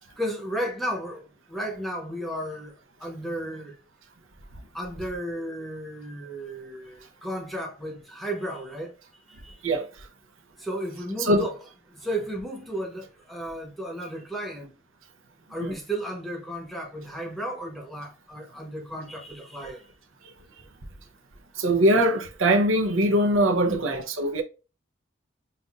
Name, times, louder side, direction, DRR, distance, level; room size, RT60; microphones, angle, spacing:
voice 1, 0.2-2.7 3.0-3.8 4.7-9.0 9.3-9.6 10.6-14.7 15.5-19.8 23.6-24.0, right 1 dB, ahead, 0.9 m, -34 dB
voice 2, 21.6-24.4, right 1 dB, 90° right, 0.8 m, -22 dB
5.6 x 2.6 x 2.4 m
head